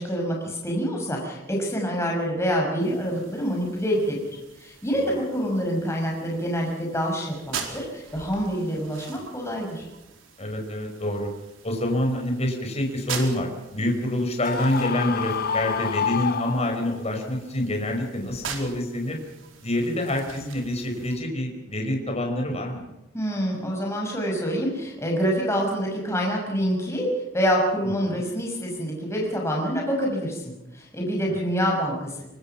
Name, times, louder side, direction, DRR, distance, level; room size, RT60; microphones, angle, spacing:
voice 1, 0.0-9.8 23.1-27.1 27.3-32.2, equal, 15° left, -1 dB, 6.2 m, -26 dB
sound 1, 2.8-21.2, right 6 dB, 80° right, 4.5 m, -42 dB
voice 2, 10.4-11.3 11.6-19.2 19.6-22.9 27.8-28.2 31.3-31.4, left 1 dB, 35° left, 3 dB, 5.3 m, -27 dB
Screaming, 14.4-17.1, left 7 dB, 50° left, 0.8 m, -28 dB
25.0 x 24.0 x 5.9 m, 0.95 s
head